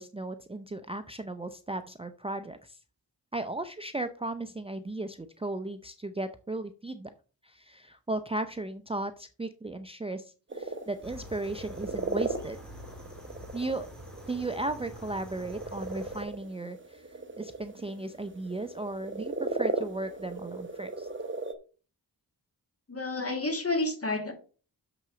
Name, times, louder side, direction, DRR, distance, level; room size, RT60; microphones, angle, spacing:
voice 1, 0.0-2.8 3.3-7.1 7.4-12.6 13.5-13.9 14.3-17.0 17.4-21.1, right 2 dB, 15° right, 9 dB, 0.6 m, -36 dB
sound 1, 10.5-21.5, right 3 dB, 30° right, 1.0 m, -37 dB
sound 2, 11.0-16.2, left 1 dB, ahead, 2.5 m, -47 dB
voice 2, 22.9-24.3, left 2 dB, 35° left, 5 dB, 2.2 m, -30 dB
6.8 x 6.0 x 5.0 m, 0.37 s
cardioid pair, 65°, 39 cm